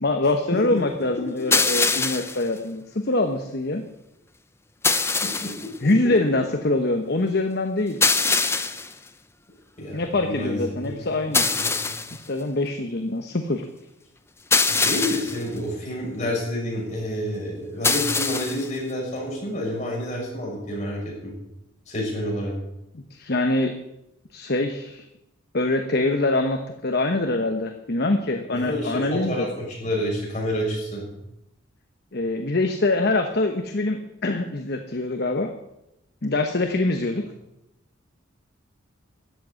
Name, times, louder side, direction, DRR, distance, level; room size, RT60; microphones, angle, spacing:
voice 1, 0.0-3.8 5.8-8.0 9.9-11.5 12.1-13.6 22.9-23.7 24.3-25.0 25.5-29.5 32.1-35.5 36.2-37.2, left 2 dB, 50° left, 6 dB, 1.1 m, -24 dB
sound 1, 1.5-2.4 4.8-5.7 8.0-8.9 11.3-12.2 14.5-15.4 17.8-18.7, left 4 dB, 15° left, 0.7 m, -22 dB
voice 2, 5.2-5.5 5.8-6.1 9.8-10.9 11.4-11.9 14.7-21.3 21.9-22.5 28.5-31.1, left 1 dB, 35° left, -4 dB, 7.1 m, -29 dB
14.0 x 7.8 x 9.6 m, 0.87 s
head